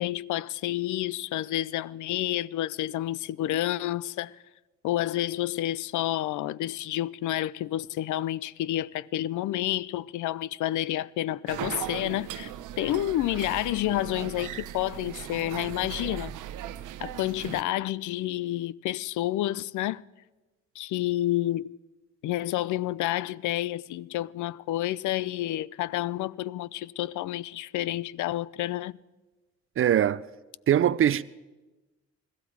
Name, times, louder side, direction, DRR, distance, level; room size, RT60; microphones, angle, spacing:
voice 1, 0.0-4.4 4.8-12.5 12.8-16.3 17.0-20.0 20.8-21.8 22.2-29.0, left 14 dB, 75° left, 0.5 m, -29 dB
sound 1, 11.5-17.6, right 11 dB, 85° right, 0.8 m, -38 dB
voice 2, 29.8-30.2 30.7-31.2, right 10 dB, 45° right, 0.4 m, -22 dB
21.5 x 14.5 x 4.7 m
cardioid pair, 90°, 30 cm